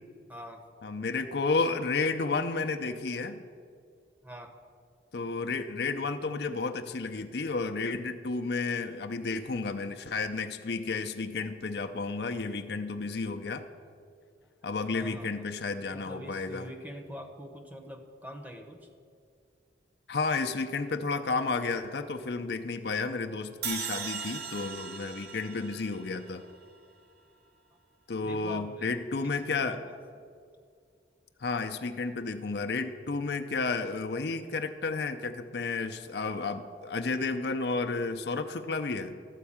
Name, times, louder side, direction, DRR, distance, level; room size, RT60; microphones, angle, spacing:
voice 1, 0.3-0.6 4.2-4.5 11.4-11.5 14.6-15.4 15.9-18.9 28.2-28.9 29.2-29.9, equal, 10° right, 4 dB, 0.8 m, -44 dB
voice 2, 0.8-3.4 5.1-13.7 14.6-16.7 20.1-26.4 28.1-29.8 31.4-39.2, left 4 dB, 65° left, 6 dB, 0.6 m, -32 dB
sound 1, 23.6-26.8, right 7 dB, 65° right, 0.8 m, -38 dB
13.0 x 4.6 x 8.6 m, 2.2 s
head